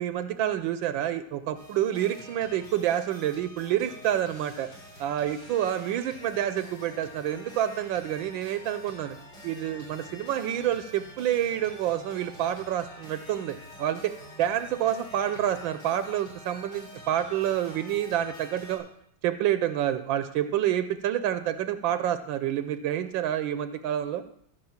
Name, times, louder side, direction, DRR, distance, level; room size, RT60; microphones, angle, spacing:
voice 1, 0.0-4.7 5.0-9.1 9.4-18.9 19.2-24.2, right 11 dB, 85° right, 11 dB, 1.4 m, -28 dB
sound 1, 1.5-18.8, equal, 65° left, 4.4 m, -47 dB
14.5 x 5.4 x 7.2 m, 0.71 s
omnidirectional pair, 2.1 m